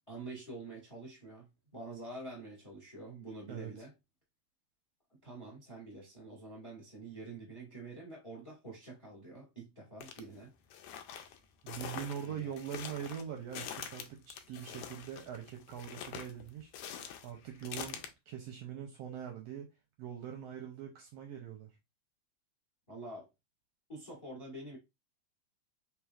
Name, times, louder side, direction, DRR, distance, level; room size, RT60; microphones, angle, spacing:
voice 1, 0.1-3.9 5.1-10.5 12.2-12.5 22.9-23.3 23.9-24.8, right 2 dB, 20° left, 0.9 m, -47 dB
sound 1, 10.0-10.2 10.7-18.1, left 9 dB, 80° left, 1.7 m, -45 dB
voice 2, 11.6-19.7 20.0-21.7, right 9 dB, 75° right, 1.5 m, -43 dB
4.9 x 3.1 x 2.3 m
omnidirectional pair, 3.4 m